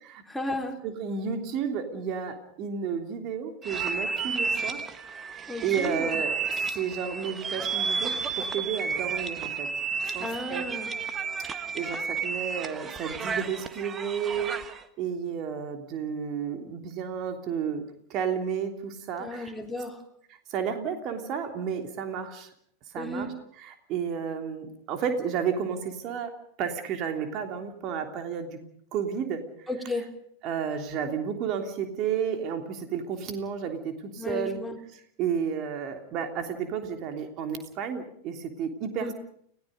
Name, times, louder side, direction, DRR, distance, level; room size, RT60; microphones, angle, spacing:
voice 1, 0.3-0.8 5.5-6.1 10.2-10.9 19.2-20.0 23.0-23.3 29.7-30.1 34.2-34.8 39.0-39.1, left 2 dB, 5° left, 2 dB, 3.6 m, -33 dB
voice 2, 0.8-6.4 6.7-9.7 10.0-10.6 11.4-11.5 11.7-17.8 18.1-19.5 20.5-22.5 22.9-23.3 23.6-26.3 26.6-28.6 28.9-29.7 30.4-34.6 35.2-39.1, right 7 dB, 40° right, 5 dB, 3.2 m, -32 dB
sound 1, 3.6-14.8, right 5 dB, 20° right, 1.5 m, -32 dB
30.0 x 18.0 x 5.3 m, 0.66 s
figure-of-eight pair, 90°, 0 cm